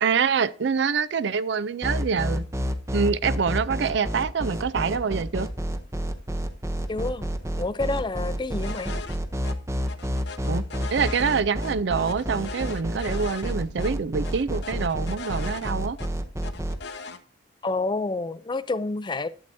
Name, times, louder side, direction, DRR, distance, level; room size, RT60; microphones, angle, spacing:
voice 1, 0.0-2.4 2.9-5.5 10.5-16.0, right 5 dB, 60° right, 0.4 m, -25 dB
sound 1, 1.8-16.8, equal, 15° right, 0.6 m, -29 dB
voice 2, 6.9-7.3 7.6-8.9 17.6-19.3, left 3 dB, 25° left, 0.4 m, -28 dB
sound 2, 8.6-9.2 9.4-9.5 9.9-11.7 12.1-13.5 13.8-13.9 14.2-16.1 16.4-17.2, left 4 dB, 60° left, 0.8 m, -39 dB
11.5 x 7.7 x 2.6 m
head